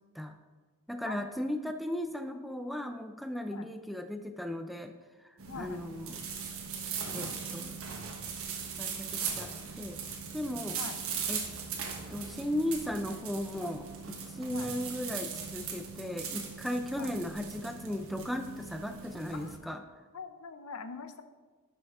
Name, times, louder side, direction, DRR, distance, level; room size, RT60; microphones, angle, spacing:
voice 1, 0.9-4.9 5.5-6.2 7.1-7.8 8.8-9.5 9.8-10.0 10.3-10.8 11.3-11.4 12.1-19.8, left 1 dB, ahead, 7 dB, 0.3 m, -36 dB
sound 1, 5.4-19.6, right 6 dB, 65° right, 1.3 m, -39 dB
voice 2, 5.5-5.8 10.7-11.0 14.5-14.7 17.0-17.1 19.3-19.6 20.1-21.2, left 5 dB, 70° left, 10 dB, 0.6 m, -43 dB
10.5 x 5.8 x 3.6 m, 1.4 s
head